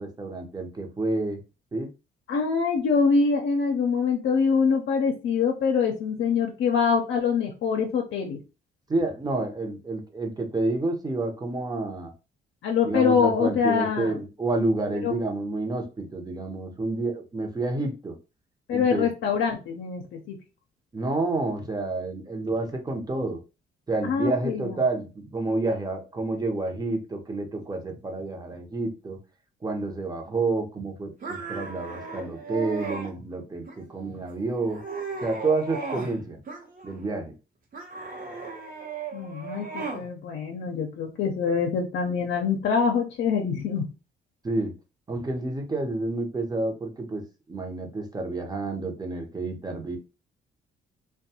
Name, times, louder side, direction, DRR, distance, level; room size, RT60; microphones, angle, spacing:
voice 1, 0.0-1.4 1.7-1.9 8.9-12.1 12.8-18.1 18.7-19.1 20.9-23.4 23.9-29.2 29.6-34.8 35.2-36.4 36.8-37.3 44.4-44.7 45.1-47.2 47.5-50.0, right 2 dB, 20° right, 4 dB, 0.7 m, -29 dB
voice 2, 2.3-8.4 12.6-14.1 15.0-15.1 18.7-20.4 24.0-24.8 39.1-43.9, left 5 dB, 70° left, 1 dB, 0.5 m, -24 dB
sound 1, 31.2-33.1 33.7-34.2 34.6-36.2 36.5-37.2 37.7-40.1, right 4 dB, 45° right, 0.9 m, -36 dB
2.5 x 2.2 x 2.8 m, 0.30 s
cardioid pair, 90°, 20 cm